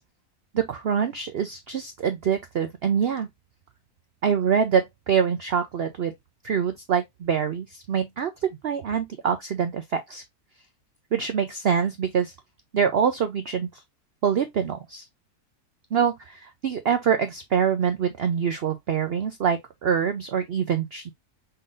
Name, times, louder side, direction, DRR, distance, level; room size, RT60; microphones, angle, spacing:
voice 1, 0.5-3.3 4.2-6.1 6.4-10.2 11.1-12.3 12.7-13.8 14.2-15.1 15.9-21.1, right 7 dB, 60° right, 0.6 m, -25 dB
5.5 x 3.8 x 2.5 m
omnidirectional pair, 1.6 m